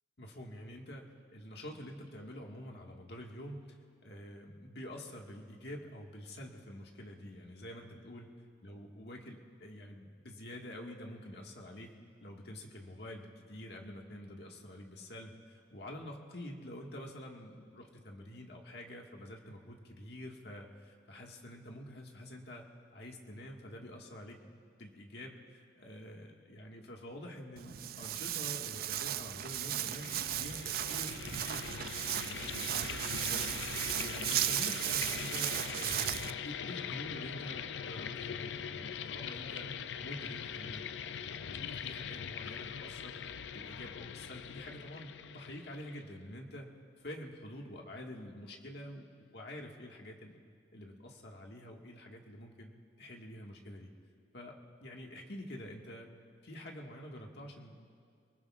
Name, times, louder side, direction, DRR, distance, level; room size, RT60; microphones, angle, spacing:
voice 1, 0.2-1.1 1.3-3.8 4.0-8.3 8.6-11.9 12.2-22.6 22.9-24.5 24.8-39.7 40.0-40.8 41.1-43.2 43.5-46.7 47.0-49.1 49.3-50.4 50.7-52.7 53.0-53.9 54.3-54.5 54.8-56.1 56.4-57.8, left 1 dB, 65° left, 0 dB, 1.8 m, -47 dB
Walk footsteps, 27.6-36.3, right 12 dB, 55° right, 0.4 m, -36 dB
sound 1, 29.5-46.2, left 7 dB, 80° left, 0.5 m, -42 dB
28.0 x 19.5 x 2.4 m, 2.3 s
head